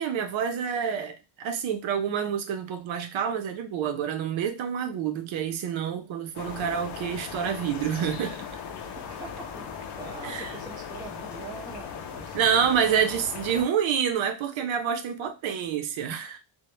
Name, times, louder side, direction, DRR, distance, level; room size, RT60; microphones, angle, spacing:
voice 1, 0.0-8.4 10.2-10.5 12.3-16.4, right 8 dB, 70° right, 0.6 m, -28 dB
sound 1, 6.3-13.6, left 7 dB, 60° left, 0.5 m, -38 dB
voice 2, 8.8-9.7 10.0-12.7, right 4 dB, 10° right, 0.3 m, -43 dB
2.1 x 2.0 x 3.0 m
cardioid pair, 135°, 48 cm